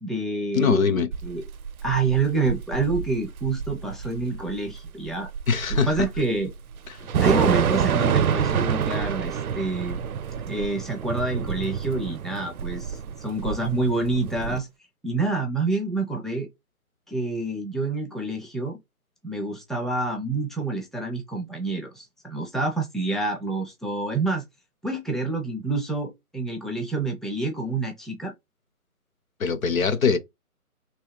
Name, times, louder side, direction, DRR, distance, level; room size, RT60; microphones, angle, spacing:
voice 1, 0.0-0.9 1.2-1.4 1.8-5.3 5.9-6.5 7.2-10.0 10.5-14.7 15.0-16.5 17.1-18.8 19.2-24.4 24.8-28.3, right 3 dB, ahead, 0.4 m, -27 dB
voice 2, 0.5-1.1 5.5-6.1 29.4-30.2, left 5 dB, 65° left, 0.8 m, -22 dB
Thunder / Rain, 1.1-14.6, right 7 dB, 75° right, 0.5 m, -27 dB
3.1 x 3.0 x 3.2 m
hypercardioid pair, 165°, 44 cm